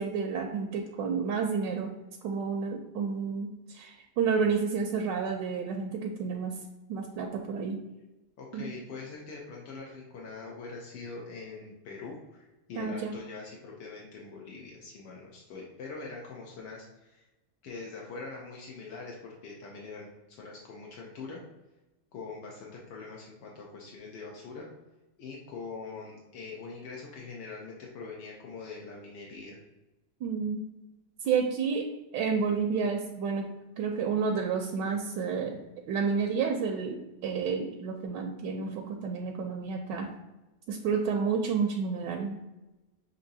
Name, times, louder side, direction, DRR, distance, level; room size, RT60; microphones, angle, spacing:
voice 1, 0.0-1.9 2.2-6.5 6.9-7.8 8.5-8.7 12.8-13.2 30.2-30.7 31.2-31.8 32.1-33.5 33.8-35.6 35.9-40.1 40.7-42.4, right 5 dB, 85° right, 2 dB, 1.2 m, -30 dB
voice 2, 8.4-17.3 17.6-21.4 22.1-24.7 25.2-29.6, left 4 dB, 80° left, -2 dB, 1.4 m, -43 dB
6.8 x 2.7 x 2.6 m, 1.0 s
omnidirectional pair, 1.9 m